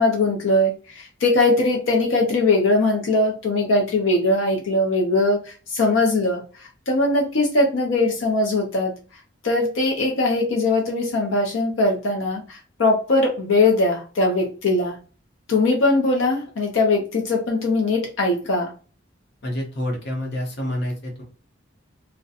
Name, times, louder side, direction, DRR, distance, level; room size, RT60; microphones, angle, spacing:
voice 1, 0.0-8.9 9.4-15.0 15.5-18.7, left 2 dB, 85° left, 1 dB, 0.5 m, -21 dB
voice 2, 19.4-21.2, left 1 dB, 60° left, 0 dB, 0.8 m, -28 dB
2.4 x 2.1 x 2.6 m, 0.37 s
head